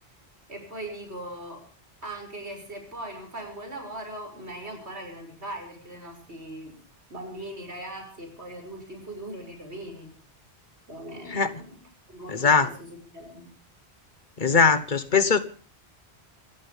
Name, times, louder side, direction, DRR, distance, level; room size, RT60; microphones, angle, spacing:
voice 1, 0.5-1.7 2.0-6.7 7.1-10.1 10.9-11.8 12.1-13.5, right 1 dB, 85° right, 6.8 m, -39 dB
voice 2, 12.3-12.7 14.4-15.4, left 5 dB, 50° left, 1.3 m, -20 dB
28.5 x 14.5 x 3.5 m
omnidirectional pair, 1.1 m